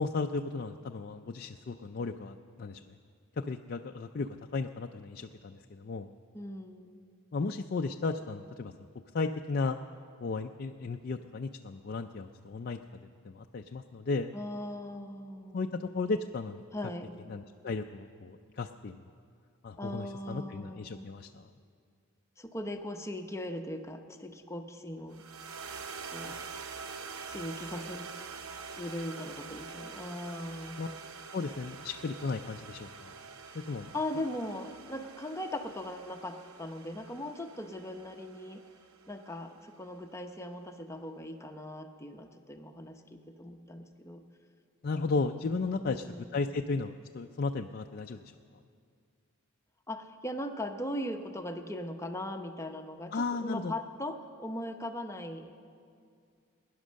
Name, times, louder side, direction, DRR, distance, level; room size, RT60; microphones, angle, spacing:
voice 1, 0.0-3.0 3.4-6.1 7.3-8.7 9.1-9.8 10.2-12.8 13.2-14.3 15.5-16.6 17.3-19.0 19.6-21.5 30.8-30.9 31.3-33.1 33.5-33.9 44.8-48.2 53.1-53.7, left 3 dB, 45° left, 4 dB, 0.4 m, -35 dB
voice 2, 6.3-7.0 14.3-15.7 16.7-17.2 19.8-21.1 22.4-25.2 26.0-26.5 26.9-28.1 28.8-30.8 33.9-38.6 39.1-44.2 45.8-46.3 49.9-55.5, left 1 dB, 15° left, 5 dB, 0.8 m, -39 dB
sound 1, 25.1-39.6, right 5 dB, 85° right, 0.9 m, -46 dB
21.5 x 10.5 x 6.3 m, 2.3 s
head